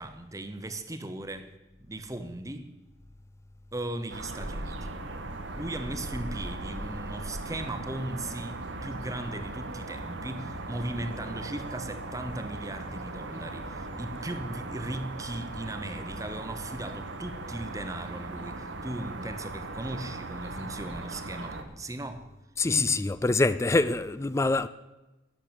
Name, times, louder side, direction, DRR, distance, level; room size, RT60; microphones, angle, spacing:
voice 1, 0.0-1.5 1.8-2.8 3.7-4.9 5.6-22.3 22.7-23.0, right 1 dB, 20° right, 0.9 m, -37 dB
sound 1, 4.1-21.6, right 2 dB, 90° right, 1.2 m, -38 dB
sound 2, 10.0-10.4 10.7-11.9 12.2-14.1 14.6-15.0 15.3-15.7 16.1-16.5 16.8-17.3 17.6-18.1 18.4-18.7 19.2-19.7 20.0-20.4 21.1-21.2 21.4-21.5, equal, ahead, 1.4 m, -53 dB
voice 2, 22.6-24.7, left 3 dB, 15° left, 0.3 m, -25 dB
12.5 x 6.8 x 8.8 m
head